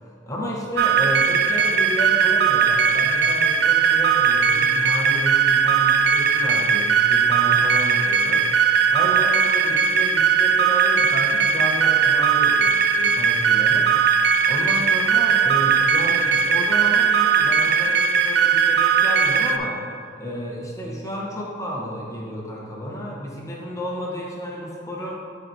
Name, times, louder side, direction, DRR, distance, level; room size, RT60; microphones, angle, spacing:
voice 1, 0.0-19.8 20.2-25.2, equal, 15° left, -3 dB, 1.0 m, -31 dB
sound 1, 0.8-19.6, right 6 dB, 60° right, 0.4 m, -19 dB
12.5 x 4.5 x 2.7 m, 2.4 s
head